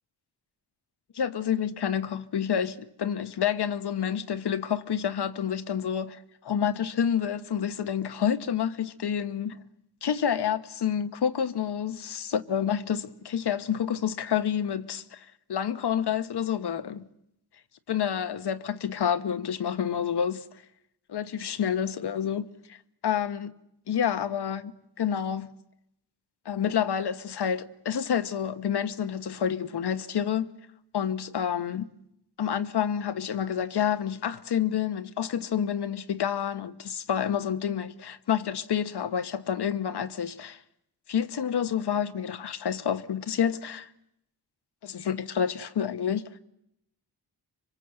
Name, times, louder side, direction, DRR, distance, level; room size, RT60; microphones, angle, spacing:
voice 1, 1.1-9.6 10.0-17.1 17.9-20.4 21.1-22.8 23.0-23.5 23.9-25.5 26.4-30.5 30.9-31.9 32.4-40.6 41.1-43.9 44.8-46.3, left 8 dB, 70° left, 1.2 m, -29 dB
26.0 x 24.0 x 8.0 m
cardioid pair, 60°, 41 cm